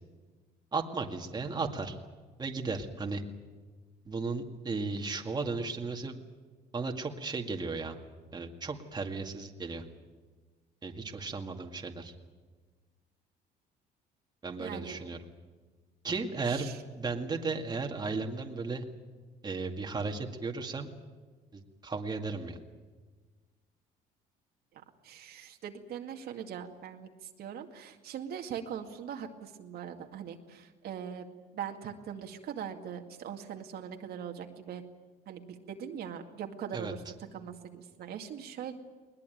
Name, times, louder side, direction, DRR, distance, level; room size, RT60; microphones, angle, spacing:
voice 1, 0.7-2.0 2.4-3.2 4.1-6.1 6.7-8.0 8.3-9.8 10.8-12.1 14.4-15.2 16.0-18.8 19.4-20.9 21.5-22.6 36.7-36.9, right 4 dB, 25° right, 3 dB, 2.1 m, -35 dB
voice 2, 14.6-15.0 16.5-16.8 24.7-27.1 27.4-31.3 31.5-34.8 35.3-37.0 37.3-38.7, right 8 dB, 70° right, 4 dB, 2.2 m, -41 dB
21.0 x 20.0 x 9.2 m, 1.4 s
cardioid pair, 110°, 17 cm